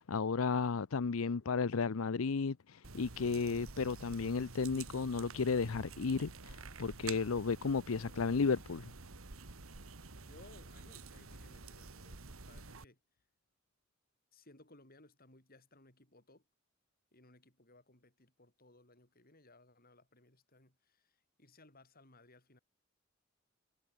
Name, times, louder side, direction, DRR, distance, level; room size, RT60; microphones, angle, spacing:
voice 1, 0.0-8.9, left 5 dB, 85° left, 0.6 m, -33 dB
sound 1, 2.8-12.8, right 4 dB, 85° right, 1.9 m, -50 dB
voice 2, 10.2-13.0 14.3-16.4 17.1-22.6, left 2 dB, 45° left, 7.9 m, -62 dB
head